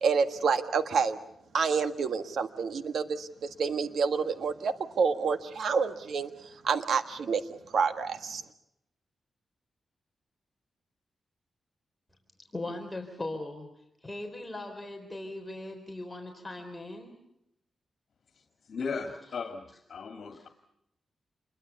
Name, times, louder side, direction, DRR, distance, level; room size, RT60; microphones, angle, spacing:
voice 1, 0.0-1.2 1.5-8.4, right 5 dB, 75° right, 9 dB, 1.6 m, -28 dB
voice 2, 12.5-13.7 14.0-17.1, left 2 dB, 10° left, 2 dB, 3.8 m, -39 dB
voice 3, 18.6-19.6 19.9-20.5, left 5 dB, 65° left, 4 dB, 2.3 m, -36 dB
28.0 x 22.0 x 6.9 m, 0.81 s
cardioid pair, 90°, 0 cm